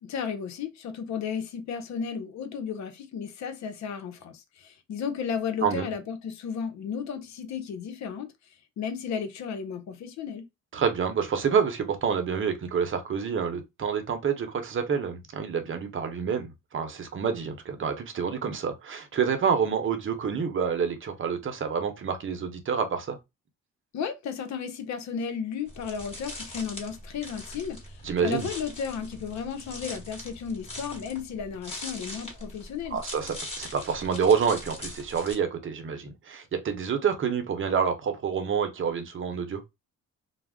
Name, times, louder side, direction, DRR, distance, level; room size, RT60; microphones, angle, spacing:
voice 1, 0.0-8.3 8.8-10.4 23.9-33.0, left 7 dB, 65° left, 0.6 m, -34 dB
voice 2, 5.6-5.9 10.7-23.2 28.0-28.5 32.9-39.6, right 6 dB, 40° right, 0.7 m, -28 dB
sound 1, 25.7-35.4, left 1 dB, 20° left, 1.2 m, -42 dB
2.3 x 2.0 x 3.4 m
cardioid pair, 90°, 30 cm